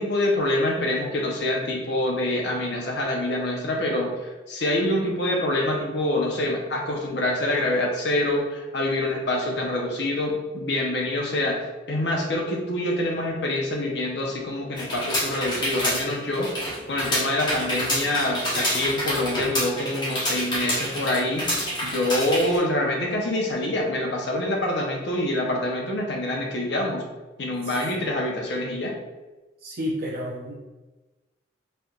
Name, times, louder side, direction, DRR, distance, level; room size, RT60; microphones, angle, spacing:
voice 1, 0.0-16.5 16.9-21.5 21.8-27.0 27.4-29.0, left 1 dB, 65° left, 0 dB, 0.8 m, -26 dB
sound 1, 14.8-22.6, equal, 25° left, 1.1 m, -27 dB
voice 2, 29.6-30.5, equal, 55° right, -4 dB, 0.5 m, -30 dB
4.3 x 3.3 x 2.4 m, 1.2 s
head